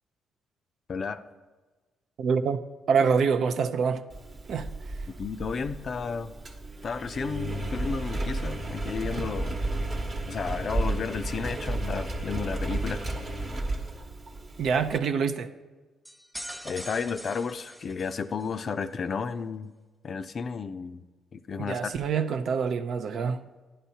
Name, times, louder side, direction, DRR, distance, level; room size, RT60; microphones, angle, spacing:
voice 1, 0.9-1.2 5.1-6.4 6.8-9.5 10.3-13.0 16.6-19.7 20.0-21.0 21.3-21.9, left 5 dB, 50° left, 0.4 m, -33 dB
voice 2, 2.2-2.6 2.9-4.1 4.5-4.7 14.6-15.5 21.6-23.4, right 6 dB, 65° right, 0.5 m, -26 dB
Engine, 4.1-15.0, right 2 dB, 40° right, 1.1 m, -33 dB
sound 1, 16.0-18.6, equal, ahead, 0.8 m, -42 dB
11.0 x 10.0 x 2.8 m
cardioid pair, 90°, 0 cm